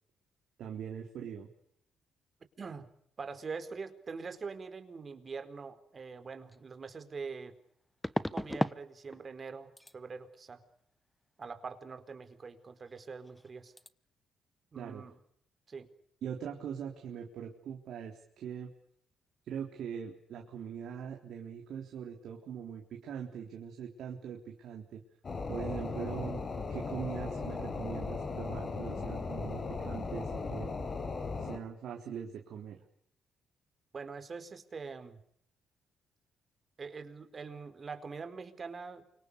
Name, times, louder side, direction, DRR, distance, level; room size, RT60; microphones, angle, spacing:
voice 1, 0.6-1.5 14.8-15.0 16.2-18.7 19.4-25.0 25.5-26.4 26.7-30.7 31.4-32.8, right 8 dB, 75° right, 1 dB, 3.8 m, -42 dB
voice 2, 2.6-2.9 3.2-7.5 8.3-10.6 11.4-13.7 14.7-15.1 15.7-15.9 33.9-35.2 36.8-39.1, right 5 dB, 45° right, 9 dB, 4.5 m, -43 dB
sound 1, 6.5-6.6 8.0-8.8 9.1-9.5 9.8-10.0 12.9-13.0 13.3-13.5 13.8-13.9, left 1 dB, 5° left, 1.1 m, -34 dB
sound 2, 25.2-31.6, left 4 dB, 45° left, 6.3 m, -37 dB
29.0 x 25.5 x 7.0 m, 0.71 s
supercardioid pair, 65°, 0 cm